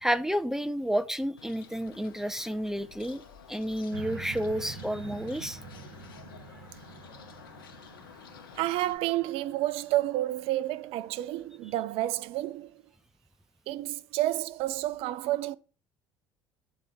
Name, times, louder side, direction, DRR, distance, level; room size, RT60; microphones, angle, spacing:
voice 1, 0.0-3.2 3.5-5.6, equal, 5° right, 0.5 m, -30 dB
Bird, 1.4-8.9, left 8 dB, 75° left, 0.8 m, -51 dB
sound 1, 3.9-11.3 11.8-11.9, right 4 dB, 85° right, 1.1 m, -47 dB
voice 2, 8.6-12.7 13.7-15.6, right 15 dB, 55° right, 0.5 m, -30 dB
8.5 x 4.6 x 4.7 m
figure-of-eight pair, 60°, 12 cm